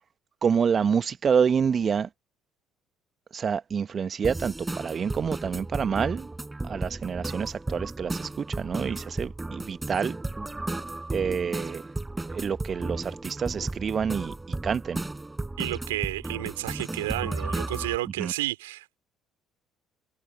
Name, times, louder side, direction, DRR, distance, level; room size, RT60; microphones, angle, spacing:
voice 1, 0.4-2.1 3.3-6.3 6.6-10.2 11.1-11.8 12.3-14.3 14.6-15.0 18.2-18.3, right 6 dB, 35° right, 1.1 m, -27 dB
sound 1, 4.2-18.0, right 2 dB, 15° right, 4.4 m, -34 dB
voice 2, 15.6-19.0, right 18 dB, 70° right, 3.5 m, -31 dB
figure-of-eight pair, 50°, 0 cm